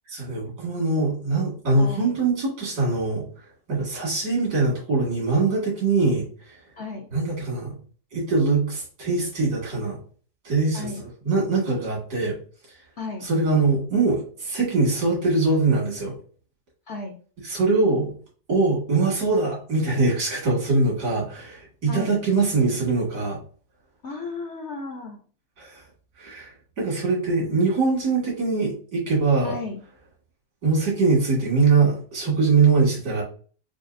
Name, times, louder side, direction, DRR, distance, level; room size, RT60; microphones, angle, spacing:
voice 1, 0.1-3.2 3.7-6.6 7.1-7.7 8.1-10.0 10.4-12.4 13.2-16.1 17.4-18.1 18.5-23.4 25.6-25.8 26.2-29.6 30.6-33.2, right 3 dB, 70° right, -4 dB, 2.7 m, -22 dB
voice 2, 1.8-2.1 6.8-7.1 10.7-11.0 13.0-13.2 16.9-17.1 21.9-22.1 24.0-25.2 29.4-29.8, left 3 dB, 60° left, 2 dB, 0.7 m, -34 dB
6.5 x 2.7 x 2.6 m, 0.43 s
omnidirectional pair, 1.8 m